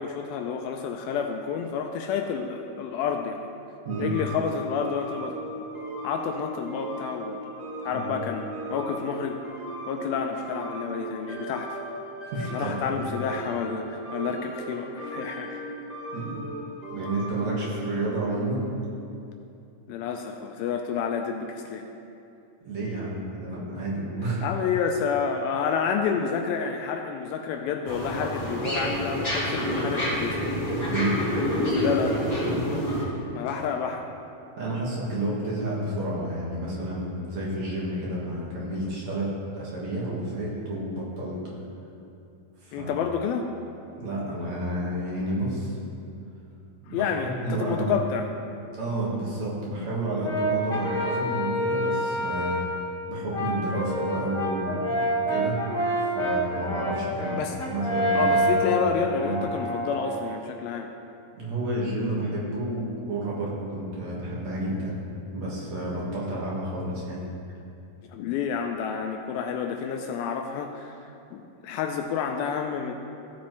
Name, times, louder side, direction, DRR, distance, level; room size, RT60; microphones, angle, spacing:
voice 1, 0.0-3.4 4.0-5.6 6.0-7.4 7.8-9.4 9.9-11.8 12.5-15.7 19.9-21.9 24.4-30.4 31.4-32.8 33.3-34.1 42.7-43.5 46.9-48.3 57.3-57.6 58.1-60.9 68.1-72.9, left 6 dB, 80° left, 4 dB, 2.2 m, -29 dB
sound 1, 3.9-18.6, right 1 dB, 20° right, 2.0 m, -37 dB
voice 2, 12.3-12.9 16.1-16.4 16.9-18.7 22.6-24.4 30.9-31.2 34.6-41.4 42.6-42.9 44.0-45.8 46.8-48.0 48.7-52.6 53.1-55.6 56.0-57.4 57.7-58.8 59.2-59.4 61.3-65.0 65.3-67.2, right 1 dB, 55° right, -6 dB, 2.5 m, -30 dB
sound 2, 27.9-33.0, equal, 15° left, 2.0 m, -27 dB
Brass instrument, 50.2-52.7 53.3-60.3, right 1 dB, 40° left, 1.6 m, -27 dB
16.0 x 8.3 x 3.1 m, 2.7 s
omnidirectional pair, 4.5 m